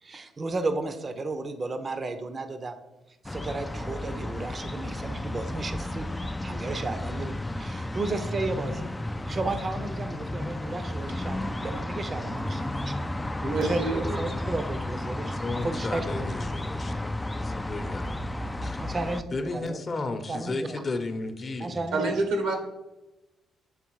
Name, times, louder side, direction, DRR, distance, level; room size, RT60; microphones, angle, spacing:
voice 1, 0.0-2.8 3.2-6.1 6.4-8.9 9.2-13.1 13.6-16.3 18.8-19.8 20.3-20.8 21.6-22.2, right 3 dB, 35° right, 9 dB, 0.6 m, -34 dB
sound 1, 3.2-19.2, left 1 dB, 10° left, 0.3 m, -33 dB
voice 2, 13.4-14.2 21.9-22.5, right 2 dB, 85° right, 4 dB, 1.4 m, -27 dB
voice 3, 15.2-18.2 18.6-18.8 19.3-21.8, left 3 dB, 35° left, 7 dB, 0.8 m, -34 dB
8.2 x 3.5 x 4.6 m, 1.0 s
cardioid pair, 90°, 0 cm